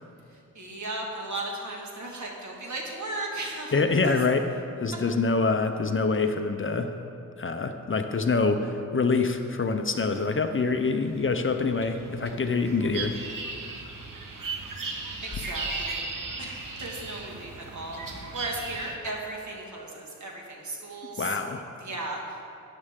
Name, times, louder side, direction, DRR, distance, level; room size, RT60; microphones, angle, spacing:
voice 1, 0.3-3.7 15.2-16.0 16.4-21.4 21.8-22.2, right 2 dB, 60° right, -1 dB, 1.9 m, -36 dB
voice 2, 3.7-4.5 4.8-6.9 7.4-13.1 21.2-21.7, left 4 dB, 40° left, 7 dB, 0.6 m, -25 dB
sound 1, 10.1-19.0, right 3 dB, 85° right, 1.1 m, -37 dB
13.0 x 9.9 x 3.7 m, 2.6 s
wide cardioid pair, 105°, 32 cm